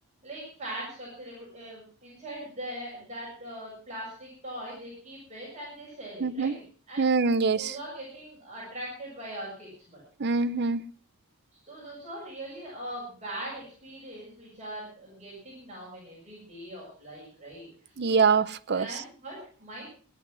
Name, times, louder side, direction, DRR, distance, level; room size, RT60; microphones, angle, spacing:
voice 1, 0.2-6.6 6.9-7.1 7.6-10.0 11.6-17.7 18.0-18.2 18.7-19.9, right 1 dB, 30° right, 7.0 m, -41 dB
voice 2, 6.2-6.5 7.0-7.8 10.2-10.8 18.0-19.0, right 4 dB, 50° right, 0.6 m, -24 dB
17.5 x 11.5 x 6.0 m
head